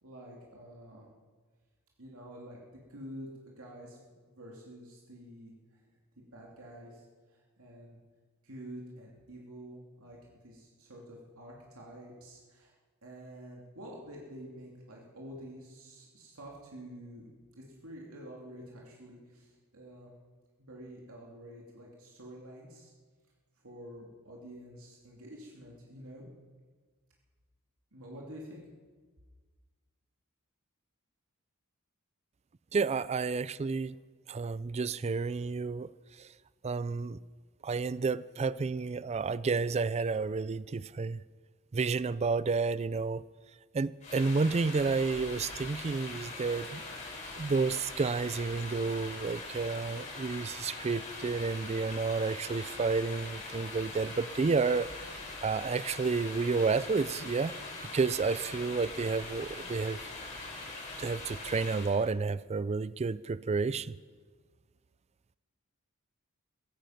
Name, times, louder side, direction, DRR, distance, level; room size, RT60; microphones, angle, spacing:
voice 1, 0.0-1.1 2.0-5.5 6.2-7.0 7.6-8.0 8.4-12.7 13.0-17.3 17.7-20.1 20.6-22.9 23.6-26.3 27.9-28.6, equal, 75° right, 2.8 m, -48 dB
voice 2, 32.7-33.9 34.3-35.9 36.2-36.3 36.6-37.2 37.6-41.2 41.7-43.2 43.7-46.8 47.4-54.9 55.4-57.6 57.9-60.0 61.0-64.0, right 4 dB, 30° right, 0.4 m, -30 dB
sound 1, 44.0-62.0, left 3 dB, 35° left, 4.7 m, -42 dB
15.5 x 15.5 x 5.9 m
head